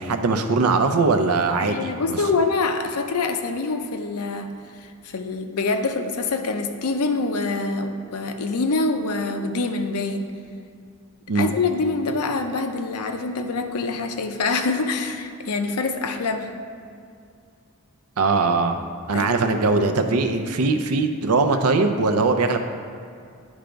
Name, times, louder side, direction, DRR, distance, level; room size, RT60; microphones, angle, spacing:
voice 1, 0.0-2.2 11.3-11.5 18.2-18.8 19.1-22.6, right 3 dB, 85° right, 7 dB, 0.6 m, -21 dB
voice 2, 1.6-4.5 4.8-10.3 11.3-16.5 19.1-19.3 19.8-19.9, left 3 dB, 85° left, 6 dB, 0.6 m, -25 dB
10.0 x 3.4 x 5.1 m, 2.3 s
head